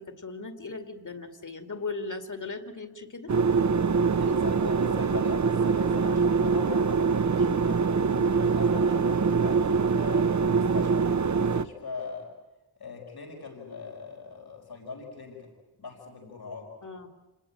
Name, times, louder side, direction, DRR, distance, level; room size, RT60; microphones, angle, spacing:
voice 1, 0.0-3.3 16.8-17.1, left 3 dB, 55° left, 7 dB, 2.5 m, -38 dB
sound 1, 3.3-11.6, right 5 dB, 50° right, 0.8 m, -24 dB
voice 2, 4.1-7.8 8.3-12.3 12.8-15.5 15.8-16.7, left 4 dB, 85° left, 1 dB, 5.1 m, -41 dB
27.5 x 20.0 x 8.8 m, 1.1 s
wide cardioid pair, 85°, 37 cm